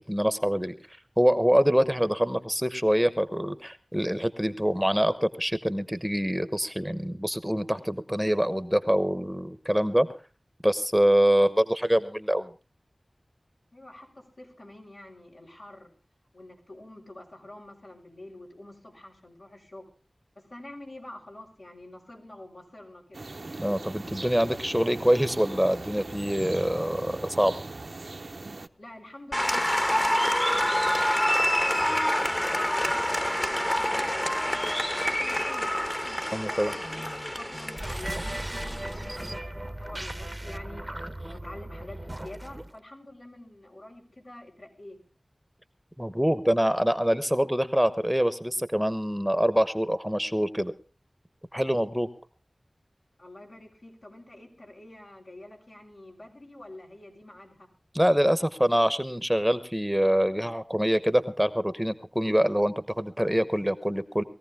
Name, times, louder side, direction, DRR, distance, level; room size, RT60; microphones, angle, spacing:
voice 1, 0.1-0.7 1.2-10.1 10.6-12.5 23.6-27.5 36.3-36.7 46.0-50.7 51.5-52.1 57.9-64.2, equal, 5° right, 12 dB, 0.9 m, -25 dB
voice 2, 13.7-15.9 16.3-19.8 20.3-23.2 28.8-30.9 31.3-35.8 36.5-40.8 41.3-45.0 53.2-57.7, left 1 dB, 75° left, -1 dB, 5.1 m, -47 dB
sound 1, 23.1-28.7, right 2 dB, 70° right, 0.7 m, -39 dB
Applause, 29.3-39.4, equal, 20° left, 1.1 m, -27 dB
sound 2, 37.7-42.8, right 1 dB, 30° right, 0.8 m, -37 dB
20.5 x 15.0 x 3.6 m, 0.34 s
wide cardioid pair, 45°, 0 cm